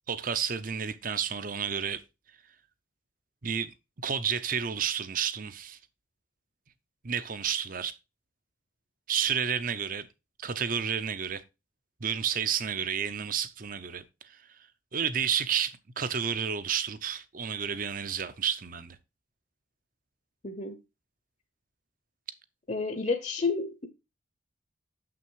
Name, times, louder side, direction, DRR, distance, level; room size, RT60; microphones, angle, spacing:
voice 1, 0.1-2.0 3.4-3.7 4.0-5.8 7.0-7.9 9.1-10.1 10.4-11.4 12.0-14.0 14.3-14.4 14.9-19.0, right 7 dB, 45° right, 0.7 m, -31 dB
voice 2, 20.4-20.8 22.7-23.9, left 4 dB, 40° left, 0.8 m, -30 dB
6.9 x 6.0 x 4.6 m
head